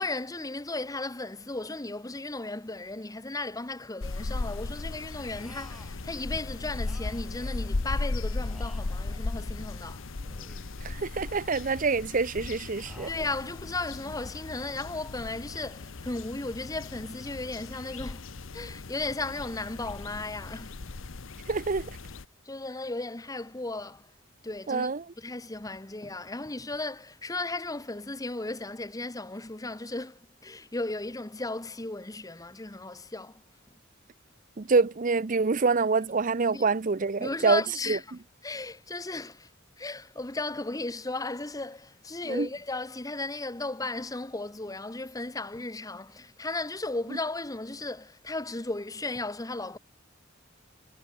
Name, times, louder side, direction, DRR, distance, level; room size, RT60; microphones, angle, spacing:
voice 1, 0.0-10.0 13.1-18.3 18.5-20.8 22.4-24.1 24.4-33.4 36.5-36.6 37.2-38.1 38.4-39.5 39.8-49.8, left 2 dB, 15° left, 1.0 m, -35 dB
sound 1, 4.0-22.3, left 3 dB, 75° left, 0.9 m, -37 dB
sound 2, 5.3-6.1 6.8-7.9 8.4-9.8 10.2-11.0 11.5-12.2 12.7-13.7, equal, ahead, 6.4 m, -54 dB
voice 2, 10.8-13.1 21.5-21.9 24.7-25.0 34.6-37.6 37.9-38.0 42.3-42.5, right 4 dB, 40° right, 0.6 m, -26 dB
head